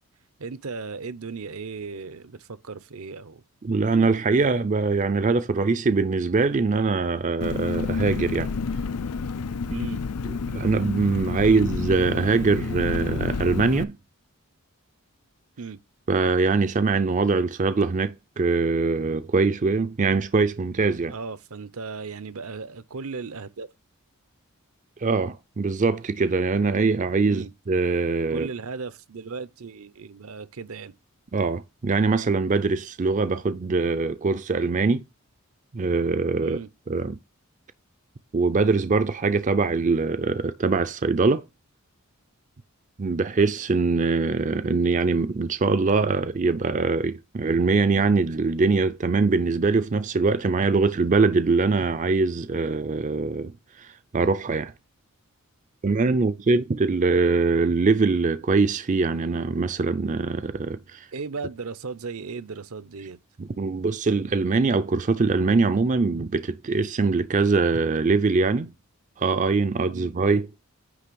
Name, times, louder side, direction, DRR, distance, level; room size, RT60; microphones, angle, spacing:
voice 1, 0.4-3.4 9.7-10.0 11.4-11.5 15.6-15.8 21.1-23.7 27.3-27.5 28.3-30.9 36.4-36.7 61.1-63.2 69.9-70.1, right 4 dB, 70° right, 0.7 m, -36 dB
voice 2, 3.6-8.5 10.5-14.0 16.1-21.1 25.0-28.5 31.3-35.0 35.7-36.6 36.9-37.2 38.3-41.4 43.0-54.7 55.8-61.1 63.4-68.7 69.2-70.5, right 4 dB, 35° right, 0.4 m, -23 dB
Engine, 7.4-13.8, left 4 dB, 90° left, 0.6 m, -30 dB
9.9 x 3.3 x 6.8 m
head